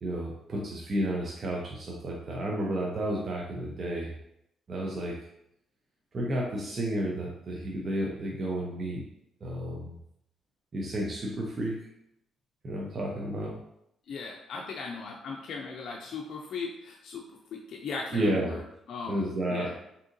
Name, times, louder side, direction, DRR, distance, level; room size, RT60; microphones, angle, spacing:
voice 1, 0.0-4.1 4.7-5.2 6.1-9.1 9.4-10.0 10.7-11.8 12.6-13.6 18.1-18.6 19.1-19.7, right 1 dB, 40° right, -3 dB, 0.6 m, -31 dB
voice 2, 14.1-17.2 17.5-18.6 18.9-19.2 19.5-19.7, left 4 dB, 65° left, -1 dB, 0.4 m, -37 dB
3.6 x 2.7 x 2.6 m, 0.77 s
cardioid pair, 90°, 0 cm